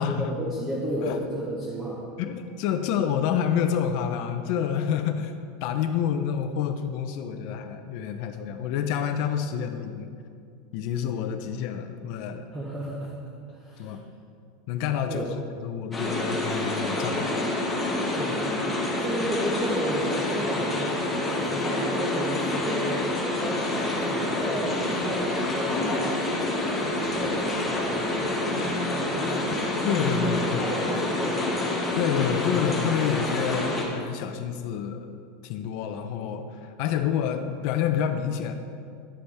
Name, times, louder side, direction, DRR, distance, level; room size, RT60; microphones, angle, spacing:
voice 1, 0.0-2.0 12.5-14.0 15.1-15.3 18.1-18.6 19.0-23.1 23.4-29.6 30.0-31.5, right 1 dB, 15° right, -4 dB, 1.0 m, -33 dB
voice 2, 2.2-5.3 5.6-10.1 10.7-12.5 13.8-14.0 14.7-17.5 29.8-30.9 31.9-35.1 35.4-38.5, left 8 dB, 45° left, 7 dB, 0.6 m, -28 dB
sound 1, 15.9-33.8, left 2 dB, 5° left, 1.3 m, -27 dB
11.0 x 8.1 x 3.5 m, 2.3 s
supercardioid pair, 175°, 0 cm